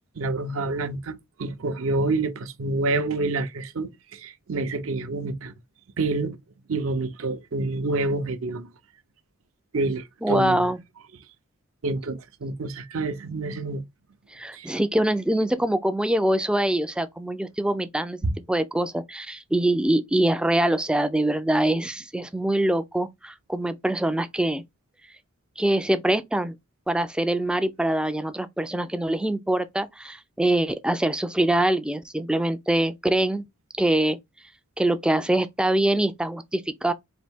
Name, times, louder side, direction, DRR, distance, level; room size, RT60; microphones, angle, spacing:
voice 1, 0.2-5.5 6.0-6.4 6.7-8.7 9.7-10.7 11.8-13.8 14.5-14.7 18.2-18.3, right 2 dB, 65° right, 0.6 m, -28 dB
voice 2, 10.2-10.8 14.3-18.2 18.5-24.6 25.6-26.6 26.9-33.4 33.8-34.2 34.8-36.9, right 1 dB, 5° right, 0.3 m, -24 dB
4.1 x 2.7 x 3.4 m
head